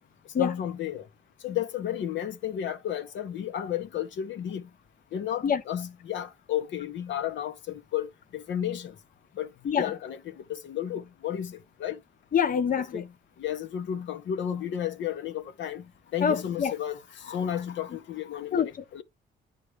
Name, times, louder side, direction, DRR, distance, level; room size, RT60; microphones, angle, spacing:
voice 1, 0.4-1.0 1.4-4.6 5.1-8.9 9.4-9.5 9.7-12.0 12.9-13.1 13.4-15.8 16.1-19.0, left 10 dB, 70° left, 1.0 m, -33 dB
voice 2, 12.3-13.0 16.2-16.7 18.5-18.7, left 7 dB, 45° left, 0.9 m, -25 dB
9.7 x 3.8 x 3.4 m
cardioid pair, 90°, 20 cm